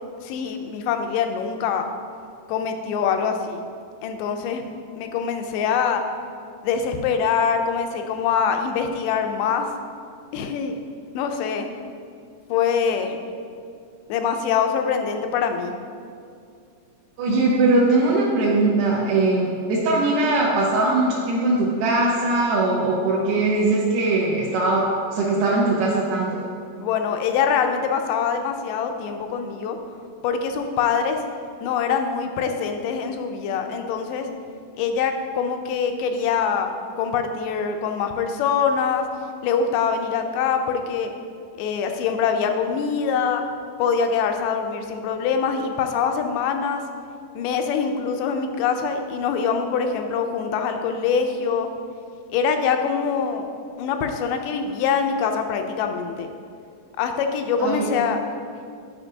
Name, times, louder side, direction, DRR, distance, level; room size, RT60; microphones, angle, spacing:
voice 1, 0.2-1.9 2.5-3.6 4.0-6.0 6.6-9.7 10.3-10.8 11.1-11.7 12.5-13.2 14.1-15.7 26.8-29.8 30.2-31.2 31.6-34.3 34.8-39.1 39.4-41.1 41.6-43.4 43.8-46.8 47.3-51.7 52.3-53.4 53.8-56.3 57.0-58.2, left 6 dB, 90° left, 5 dB, 2.2 m, -24 dB
voice 2, 17.2-26.4 57.6-57.9, right 2 dB, 75° right, -5 dB, 1.8 m, -20 dB
9.3 x 5.3 x 2.7 m, 2.3 s
omnidirectional pair, 3.7 m